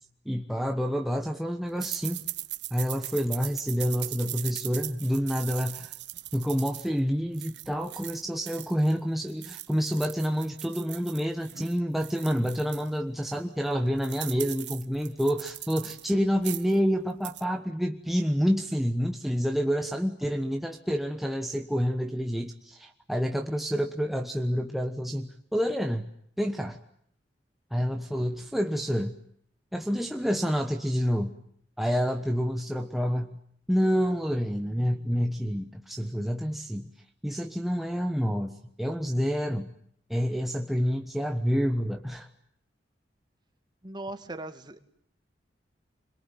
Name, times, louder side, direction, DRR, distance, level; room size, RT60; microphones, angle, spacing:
voice 1, 0.3-2.2 2.7-5.9 6.3-26.1 26.4-26.8 27.7-29.1 29.7-31.4 31.8-33.3 33.7-36.9 37.2-39.7 40.1-42.3, equal, ahead, 3 dB, 1.2 m, -28 dB
sound 1, 1.8-9.0 9.3-12.9 13.3-13.4 13.7-16.1 16.4-16.8 17.1-17.4, right 16 dB, 75° right, 1.2 m, -39 dB
voice 2, 43.8-44.8, right 2 dB, 25° right, 8 dB, 2.0 m, -38 dB
26.0 x 22.5 x 9.0 m, 0.68 s
head